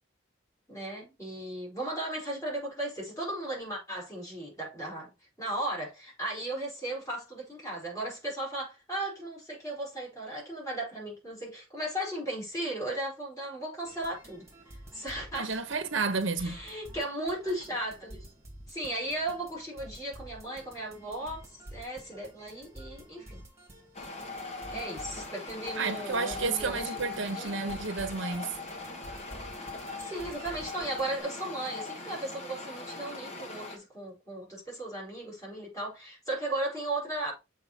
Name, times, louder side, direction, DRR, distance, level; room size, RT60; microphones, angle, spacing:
voice 1, 0.7-5.1 5.4-14.5 14.9-15.6 16.4-18.3 18.7-23.4 24.7-27.5 30.0-37.3, right 1 dB, 15° left, 4.9 m, -36 dB
sound 1, 13.8-31.2, right 1 dB, 15° right, 2.4 m, -50 dB
voice 2, 15.3-16.6 25.7-28.5, right 4 dB, 65° right, 1.0 m, -31 dB
sound 2, 23.9-33.8, left 3 dB, 35° left, 1.5 m, -40 dB
7.0 x 5.0 x 4.2 m
head